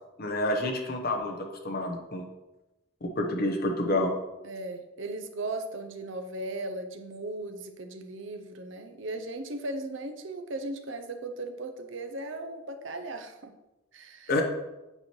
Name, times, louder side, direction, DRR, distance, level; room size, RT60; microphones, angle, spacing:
voice 1, 0.2-2.3 3.0-4.1 14.3-14.4, left 1 dB, 50° left, 1 dB, 0.9 m, -28 dB
voice 2, 4.4-13.5 13.9-14.3, right 2 dB, 65° right, 7 dB, 0.7 m, -37 dB
8.7 x 4.4 x 3.1 m, 1.0 s
head